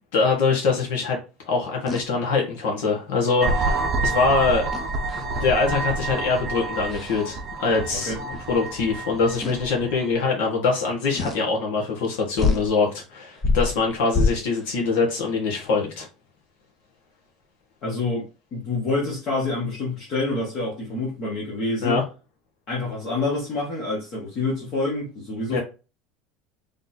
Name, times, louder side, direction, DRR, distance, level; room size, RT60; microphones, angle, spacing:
voice 1, 0.1-1.2 1.5-4.7 5.1-16.1 21.8-22.0 25.5-25.6, left 4 dB, 80° left, 0 dB, 1.6 m, -23 dB
sound 1, 1.9-2.1 4.7-5.4 5.8-6.1 6.9-7.2 8.4-8.5 9.4-9.7 11.1-11.4 12.0-12.1 12.4-12.7 13.3-14.7, left 3 dB, 20° left, 0.7 m, -26 dB
sound 2, 3.4-10.1, right 3 dB, 25° right, 0.7 m, -28 dB
voice 2, 17.8-22.0 22.7-25.6, left 2 dB, 40° left, -5 dB, 1.8 m, -27 dB
4.1 x 3.5 x 2.8 m, 0.31 s
cardioid pair, 160°, 0 cm